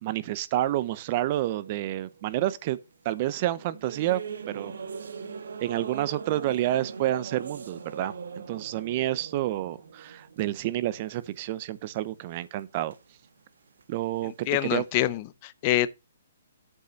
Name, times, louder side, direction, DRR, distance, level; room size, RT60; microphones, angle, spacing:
voice 1, 0.0-2.8 3.0-4.7 5.6-12.9 13.9-14.8, right 14 dB, 35° right, 0.6 m, -29 dB
sound 1, 0.6-3.1 3.6-11.8 12.1-13.4 13.7-15.1, right 6 dB, 75° right, 1.3 m, -42 dB
voice 2, 14.2-15.9, left 15 dB, 30° left, 0.6 m, -26 dB
8.4 x 5.3 x 5.2 m
hypercardioid pair, 160°, 0 cm